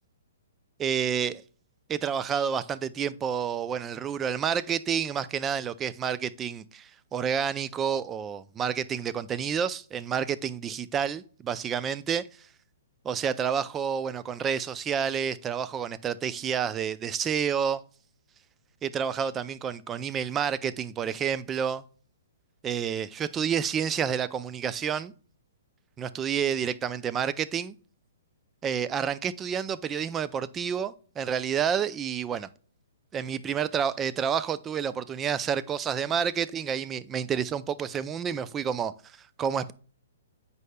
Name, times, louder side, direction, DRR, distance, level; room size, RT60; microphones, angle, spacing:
voice 1, 0.8-1.4 1.9-12.2 13.0-17.8 18.8-21.8 22.6-25.1 26.0-27.7 28.6-32.5 33.1-38.9 39.4-39.7, right 7 dB, 15° right, 0.3 m, -29 dB
8.1 x 5.4 x 2.2 m
hypercardioid pair, 150°, 0 cm